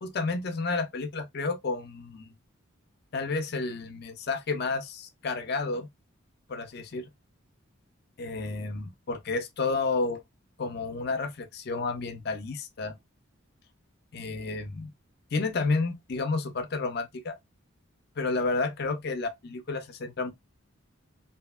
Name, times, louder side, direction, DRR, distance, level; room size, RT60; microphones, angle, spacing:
voice 1, 0.0-2.3 3.1-5.9 6.5-7.1 8.2-10.2 10.6-12.9 14.1-14.9 15.3-17.4 18.2-20.3, left 3 dB, 50° left, 0.5 m, -31 dB
2.7 x 2.7 x 2.2 m
head